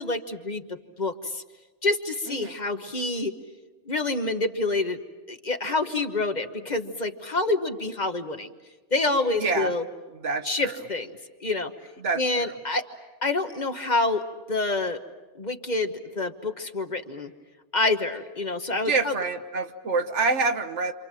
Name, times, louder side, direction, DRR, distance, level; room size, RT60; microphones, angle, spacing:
voice 1, 0.0-1.4 1.8-3.3 3.9-5.0 5.3-8.5 8.9-9.8 10.4-11.1 11.4-11.7 12.2-12.9 13.2-15.0 15.3-17.3 17.7-19.1, left 2 dB, 40° left, 7 dB, 1.3 m, -27 dB
voice 2, 9.3-9.7 10.2-10.8 12.0-12.6 18.8-20.9, right 4 dB, 75° right, 7 dB, 1.6 m, -27 dB
28.0 x 27.0 x 7.6 m, 1.2 s
omnidirectional pair, 1.2 m